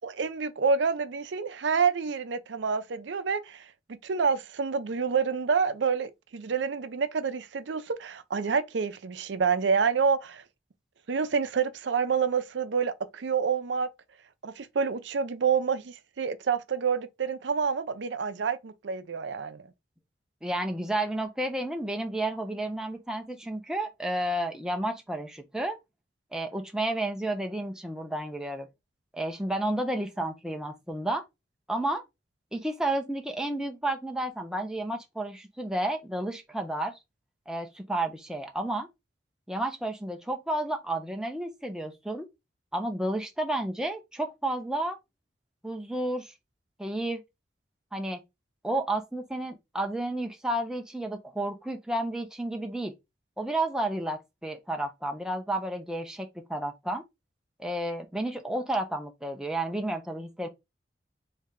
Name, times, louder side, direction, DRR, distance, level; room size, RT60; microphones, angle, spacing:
voice 1, 0.0-10.4 11.1-13.9 14.4-19.7, right 5 dB, 75° right, 0.5 m, -28 dB
voice 2, 20.4-25.8 26.3-28.7 29.1-31.2 31.7-32.0 32.5-37.0 37.5-38.9 39.5-42.3 42.7-45.0 45.6-46.3 46.8-47.2 47.9-48.2 48.6-52.9 53.4-57.0 57.6-60.5, right 1 dB, 5° right, 0.5 m, -31 dB
3.2 x 2.7 x 3.6 m
head